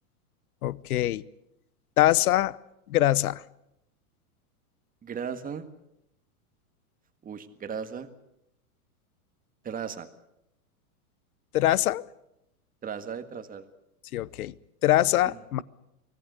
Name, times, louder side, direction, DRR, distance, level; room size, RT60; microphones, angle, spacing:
voice 1, 0.6-1.2 2.0-2.6 2.9-3.4 11.5-12.0 14.1-14.5 14.8-15.6, left 14 dB, 80° left, 21 dB, 0.9 m, -23 dB
voice 2, 5.0-5.7 7.2-8.1 9.6-10.1 12.8-13.6 15.2-15.6, right 7 dB, 20° right, 9 dB, 1.7 m, -36 dB
24.5 x 18.0 x 8.1 m, 0.83 s
hypercardioid pair, 130°, 43 cm